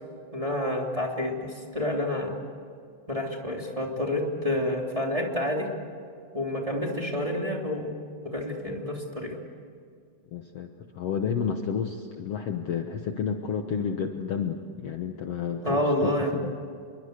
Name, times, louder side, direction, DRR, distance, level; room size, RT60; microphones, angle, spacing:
voice 1, 0.3-2.3 3.1-5.7 6.3-7.9 8.2-9.4 15.6-16.3, left 1 dB, 10° right, 0 dB, 3.0 m, -28 dB
voice 2, 10.3-16.5, left 6 dB, 60° left, 5 dB, 1.9 m, -31 dB
28.5 x 23.5 x 8.2 m, 2.2 s
omnidirectional pair, 3.7 m